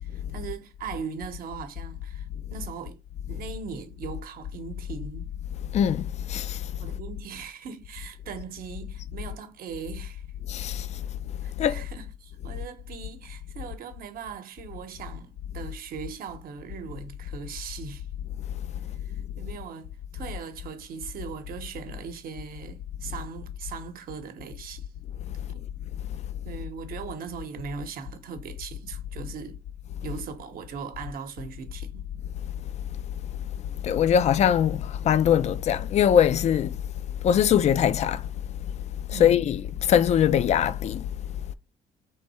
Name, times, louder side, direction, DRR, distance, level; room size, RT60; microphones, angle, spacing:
voice 1, 0.0-3.0 3.3-5.3 6.8-10.2 11.4-18.1 19.1-24.9 25.5-25.6 26.4-29.6 30.0-32.1 39.1-39.5, right 6 dB, 60° right, 0.9 m, -39 dB
voice 2, 5.7-6.6 10.5-10.9 11.6-11.8 33.8-36.8 37.2-38.3 39.1-41.1, left 9 dB, 40° left, 0.4 m, -22 dB
3.5 x 2.7 x 4.2 m
cardioid pair, 110°, 17 cm